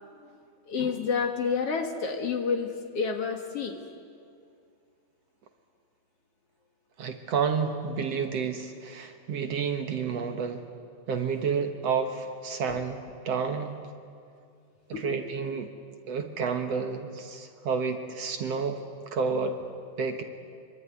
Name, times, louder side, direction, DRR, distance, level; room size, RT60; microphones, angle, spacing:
voice 1, 0.7-3.8 12.7-12.8 14.9-15.2, left 5 dB, 55° left, 4 dB, 2.4 m, -29 dB
voice 2, 7.0-10.7 11.1-13.8 14.9-15.7 16.1-18.8 19.1-19.6 20.0-20.2, right 5 dB, 60° right, 6 dB, 2.2 m, -30 dB
24.5 x 24.0 x 9.7 m, 2.3 s
omnidirectional pair, 3.6 m